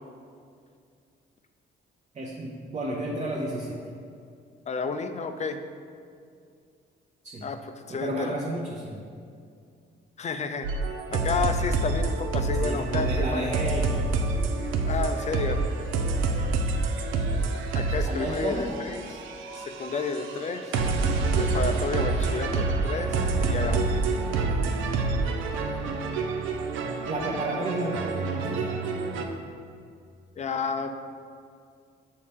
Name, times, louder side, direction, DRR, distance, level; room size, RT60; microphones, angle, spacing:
voice 1, 2.1-3.8 7.2-7.5 7.9-9.0 12.6-14.1 17.1-17.5 18.1-18.7 27.1-28.8, right 1 dB, 35° right, -3 dB, 0.7 m, -32 dB
voice 2, 4.7-5.6 7.4-8.4 10.2-10.7 11.1-13.6 14.8-15.6 17.5-19.2 19.6-20.6 21.4-24.0 30.4-31.0, left 4 dB, 35° left, 8 dB, 0.4 m, -31 dB
sound 1, 10.6-29.2, right 3 dB, 90° right, 0.5 m, -27 dB
6.5 x 4.2 x 3.5 m, 2.3 s
cardioid pair, 90°, 20 cm